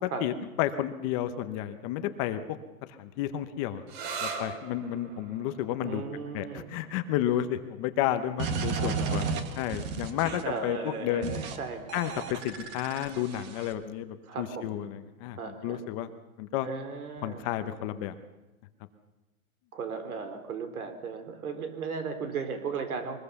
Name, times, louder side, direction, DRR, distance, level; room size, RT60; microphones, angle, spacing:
voice 1, 0.0-2.4 3.0-3.8 4.2-6.0 6.3-9.2 9.6-11.3 11.9-16.1 16.4-16.7 17.2-18.1, left 12 dB, 25° left, 9 dB, 0.8 m, -31 dB
sound 1, 3.9-11.3, right 5 dB, 45° right, 3.7 m, -43 dB
voice 2, 5.8-6.7 8.7-9.4 10.4-11.9 14.3-14.8 15.3-15.8 16.6-17.4 19.7-23.2, right 5 dB, 75° right, 8 dB, 4.1 m, -36 dB
sound 2, 8.4-10.6 11.2-11.6 11.9-13.7, right 5 dB, 25° right, 1.6 m, -33 dB
23.0 x 20.5 x 7.0 m, 1.1 s
hypercardioid pair, 160°, 44 cm